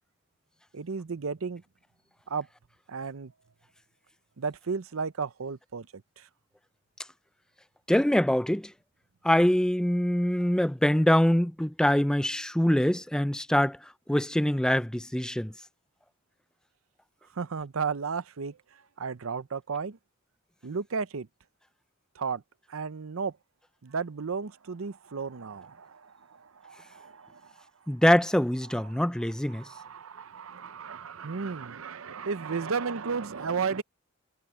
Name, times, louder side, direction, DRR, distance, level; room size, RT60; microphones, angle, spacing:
voice 1, 0.7-1.6 2.3-2.5 2.9-3.3 4.4-6.3 17.3-20.0 20.6-21.3 22.1-22.4 22.7-23.4 23.8-27.9 28.7-33.8, right 5 dB, 85° right, 0.7 m, -34 dB
voice 2, 7.9-8.7 9.2-13.8 14.1-15.5 27.9-29.6, equal, 5° left, 0.4 m, -24 dB
head